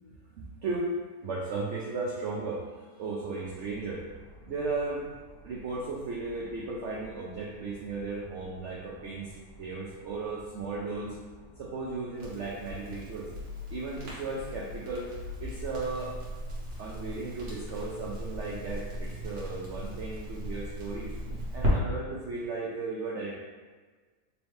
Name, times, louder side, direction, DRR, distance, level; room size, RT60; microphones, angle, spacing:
voice 1, 0.4-0.9 1.2-4.0 4.5-5.1 5.4-11.1 11.6-13.3 13.7-15.1 15.4-16.1 16.8-21.1 21.5-23.4, right 3 dB, 80° right, -3 dB, 0.6 m, -35 dB
sound 1, 3.4-22.2, equal, 70° left, 1.0 m, -54 dB
Crackle, 12.2-21.7, equal, 60° right, 1.5 m, -36 dB
4.2 x 2.8 x 3.1 m, 1.4 s
omnidirectional pair, 1.9 m